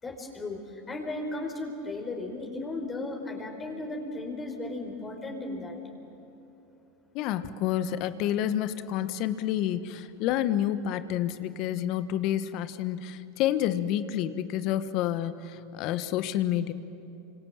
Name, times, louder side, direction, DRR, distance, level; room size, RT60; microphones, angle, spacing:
voice 1, 0.0-5.8, left 2 dB, 20° left, 2 dB, 4.8 m, -35 dB
voice 2, 7.1-16.7, left 11 dB, 55° left, 11 dB, 1.4 m, -29 dB
29.0 x 26.0 x 7.5 m, 2.9 s
hypercardioid pair, 105°, 0 cm